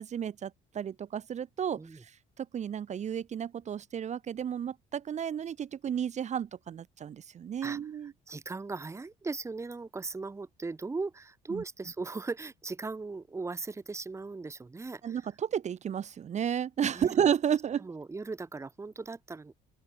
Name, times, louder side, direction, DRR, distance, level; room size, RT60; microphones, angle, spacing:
voice 1, 0.0-2.1 2.4-8.1 11.5-11.6 15.0-17.8, right 8 dB, 45° right, 1.2 m, -32 dB
voice 2, 8.3-15.2 16.9-17.1 17.8-19.5, right 3 dB, 15° right, 1.3 m, -38 dB
open air
cardioid pair, 110°, 17 cm